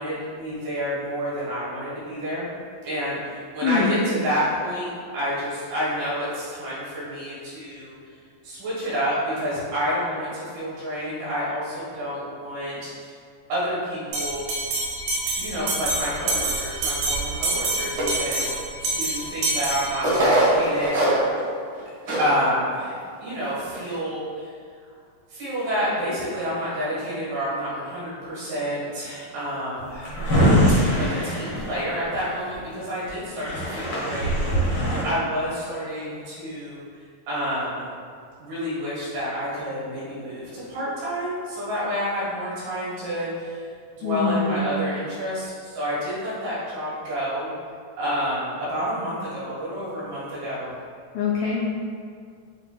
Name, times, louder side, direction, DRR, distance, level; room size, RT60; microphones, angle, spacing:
voice 1, 0.0-2.5 2.8-7.9 8.4-13.2 13.5-14.5 15.4-21.2 22.2-24.5 25.3-30.1 30.7-36.8 37.3-37.9 38.4-43.6 43.9-47.5 48.0-50.7, equal, 75° right, -9 dB, 3.2 m, -29 dB
voice 2, 3.6-4.0 44.0-44.6 51.1-51.7, left 5 dB, 85° left, -6 dB, 1.6 m, -23 dB
Bell, 14.1-20.4, right 2 dB, 90° right, 2.7 m, -27 dB
sound 1, 18.0-18.4 19.2-19.3 20.0-21.4 21.8-21.9 22.1-22.3 22.8-22.9 23.5-23.8, right 1 dB, 50° right, 1.5 m, -22 dB
Drawer open or close, 29.8-32.5 33.1-33.2 33.3-35.0, equal, 55° left, 1.3 m, -22 dB
7.5 x 2.8 x 2.2 m, 2.2 s
omnidirectional pair, 3.9 m